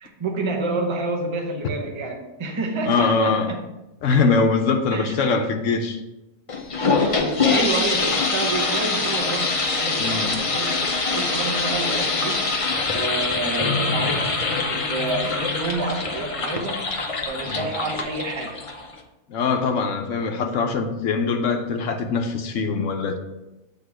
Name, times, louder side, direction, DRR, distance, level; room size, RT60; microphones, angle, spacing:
voice 1, 0.0-3.7 4.9-5.2 7.0-12.5 12.9-16.9 17.3-18.6, right 3 dB, 25° right, 1 dB, 0.8 m, -29 dB
voice 2, 2.9-3.5 4.0-6.0 10.0-10.3 17.5-17.6 19.3-23.2, left 4 dB, 75° left, 5 dB, 1.0 m, -22 dB
sound 1, 6.5-19.0, left 3 dB, 35° left, 0.5 m, -24 dB
8.0 x 3.6 x 4.7 m, 0.97 s
omnidirectional pair, 1.4 m